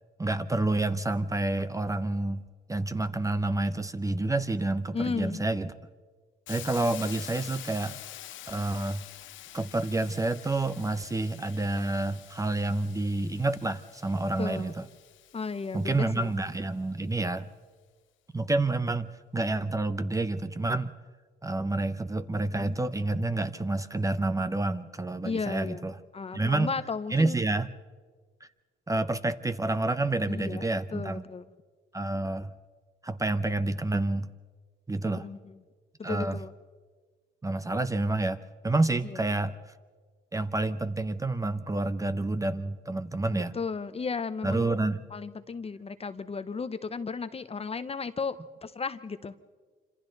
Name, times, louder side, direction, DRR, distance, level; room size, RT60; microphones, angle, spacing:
voice 1, 0.2-2.4 2.7-5.7 6.5-8.0 8.5-9.0 9.5-14.9 15.7-17.5 18.3-20.9 21.4-26.0 26.3-26.7 27.1-27.7 28.4-28.5 28.9-31.2 31.9-32.5 33.0-34.3 34.9-35.3 36.0-36.4 37.4-39.7 40.3-43.6 44.4-45.1, right 2 dB, 15° right, 12 dB, 0.8 m, -29 dB
voice 2, 4.9-5.4 14.4-14.7 15.3-16.3 25.2-25.8 26.1-27.4 30.3-30.7 30.9-31.4 35.0-35.4 36.0-36.5 39.0-39.2 43.3-44.7 45.1-49.3, left 5 dB, 30° left, 12 dB, 0.8 m, -34 dB
Hiss, 6.5-16.4, left 13 dB, 75° left, 0.7 m, -47 dB
26.5 x 26.0 x 4.0 m, 1.5 s
cardioid pair, 90°, 20 cm